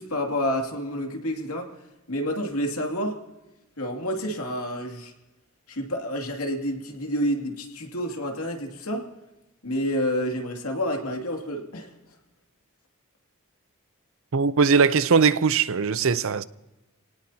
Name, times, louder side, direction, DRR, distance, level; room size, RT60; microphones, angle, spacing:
voice 1, 0.0-1.7 2.1-3.2 3.8-5.1 5.7-9.1 9.6-11.9, equal, 80° left, 2.5 m, -29 dB
voice 2, 14.3-16.4, right 5 dB, 65° right, 0.6 m, -20 dB
27.0 x 18.5 x 2.9 m
head